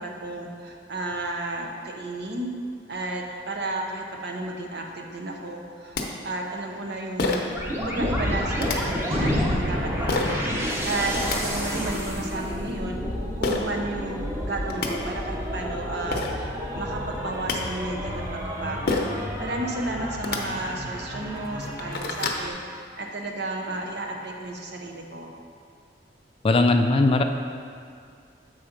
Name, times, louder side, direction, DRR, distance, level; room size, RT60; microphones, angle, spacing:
voice 1, 0.0-2.5 2.9-6.0 6.2-7.5 7.8-13.0 13.4-25.4, right 2 dB, 65° right, 1 dB, 0.8 m, -33 dB
sound 1, 5.6-5.7 5.9-6.0 7.2-7.6 8.6-8.8 10.1-10.3 11.0-11.4 13.4-13.6 14.4-14.5 14.7-14.9 15.8-15.9 16.1-16.3 17.1-17.6 18.9-19.2 20.1-20.4 21.0-21.1 21.5-22.4, left 3 dB, 60° left, 0.7 m, -27 dB
sound 2, 7.5-22.5, equal, 15° right, 0.8 m, -31 dB
Gunshot gunfire, 8.0-14.6, left 1 dB, 35° right, 1.2 m, -32 dB
voice 2, 26.4-27.2, left 2 dB, 30° left, 6 dB, 0.3 m, -19 dB
7.1 x 4.2 x 5.1 m, 2.3 s
head